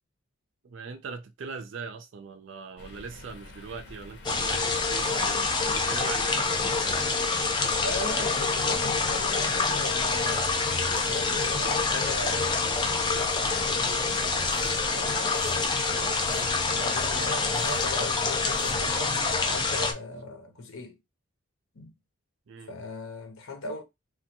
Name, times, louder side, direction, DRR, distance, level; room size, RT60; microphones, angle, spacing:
voice 1, 0.6-7.2 15.6-15.8 17.6-17.7 22.5-22.7, right 5 dB, 60° right, 0.4 m, -41 dB
sound 1, 2.8-18.9, left 2 dB, 55° left, 0.7 m, -45 dB
sound 2, 4.2-19.9, left 4 dB, 20° left, 0.3 m, -26 dB
voice 2, 7.8-10.5 11.0-14.2 14.8-16.2 16.7-19.1 19.4-21.0 21.7-21.9 22.7-23.8, left 2 dB, 80° left, 0.9 m, -39 dB
3.2 x 2.3 x 2.8 m
head